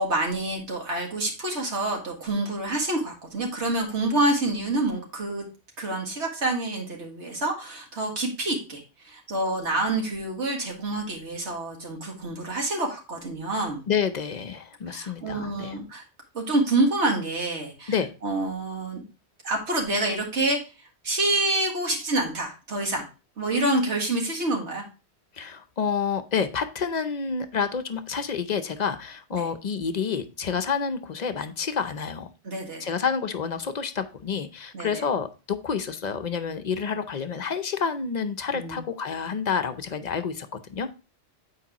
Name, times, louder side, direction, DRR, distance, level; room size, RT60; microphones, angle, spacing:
voice 1, 0.0-5.4 5.8-13.8 14.9-16.0 16.3-17.9 18.2-19.0 19.4-20.6 21.0-23.1 23.4-24.8 29.3-29.5 32.4-32.9 34.7-35.0 38.5-38.8, right 2 dB, 90° right, 0 dB, 2.1 m, -27 dB
voice 2, 13.9-15.7 17.9-18.1 25.3-32.3 32.8-40.9, left 6 dB, 50° left, 10 dB, 0.6 m, -29 dB
8.5 x 4.7 x 2.9 m, 0.31 s
omnidirectional pair, 1.1 m